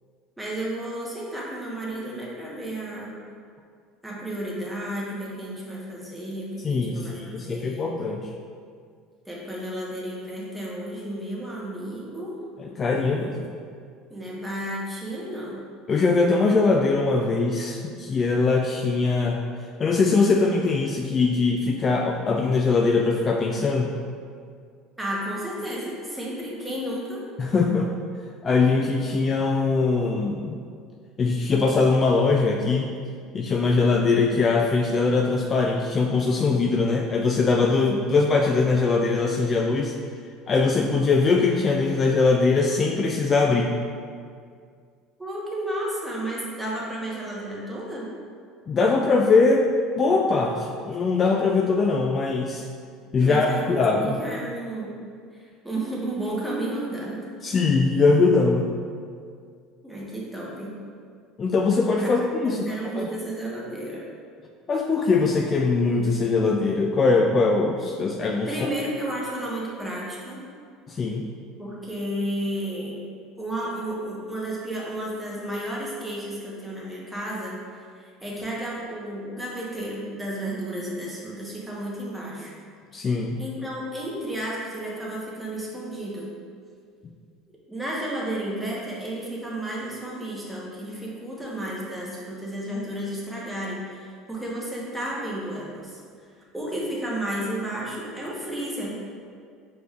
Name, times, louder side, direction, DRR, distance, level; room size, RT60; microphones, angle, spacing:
voice 1, 0.4-3.2 4.0-7.9 9.3-12.4 14.1-15.6 25.0-27.2 45.2-48.1 53.2-54.9 55.3-57.3 59.8-60.7 62.4-64.0 68.5-70.4 71.6-73.0 73.4-77.6 78.0-82.5 83.4-86.3 87.7-96.0 96.5-98.9, right 1 dB, 5° right, -5 dB, 1.1 m, -32 dB
voice 2, 6.6-8.3 12.6-13.4 15.9-19.4 19.8-23.9 27.4-27.9 28.4-30.6 31.2-32.9 33.3-39.9 40.5-43.7 48.7-49.6 50.0-52.6 53.1-54.2 57.4-58.7 61.4-63.0 64.7-68.5 70.9-71.3 82.9-83.4, left 4 dB, 35° left, 1 dB, 0.3 m, -21 dB
4.8 x 3.2 x 2.4 m, 2.1 s
hypercardioid pair, 85°, 0 cm